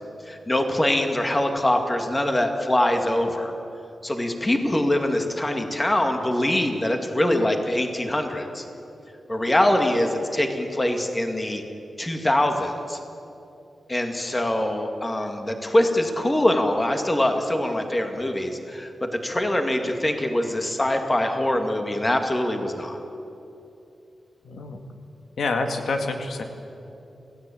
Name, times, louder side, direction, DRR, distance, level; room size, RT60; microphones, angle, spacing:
voice 1, 0.3-3.6 4.0-8.6 9.3-11.6 12.0-13.0 13.9-23.0, left 1 dB, 20° left, 4 dB, 2.2 m, -23 dB
voice 2, 24.4-24.8 25.4-26.4, left 3 dB, 90° left, 4 dB, 2.1 m, -27 dB
28.0 x 17.0 x 8.6 m, 2.8 s
wide cardioid pair, 130°, 0 cm